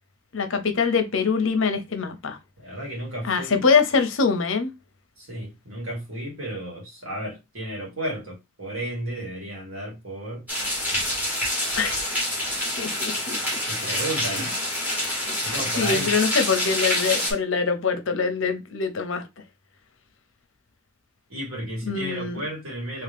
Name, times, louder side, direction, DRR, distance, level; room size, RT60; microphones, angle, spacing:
voice 1, 0.3-2.4 3.2-4.7 11.8-12.1 12.8-13.4 13.8-13.9 14.2-14.5 15.3-15.4 15.8-19.2 21.9-22.4, left 5 dB, 65° left, 0.6 m, -24 dB
voice 2, 2.6-3.6 5.2-10.5 13.7-14.6 15.4-16.1 21.3-23.0, right 1 dB, 75° right, 2.1 m, -33 dB
sound 1, 10.5-17.3, left 1 dB, 10° right, 1.1 m, -27 dB
3.0 x 2.8 x 3.4 m
head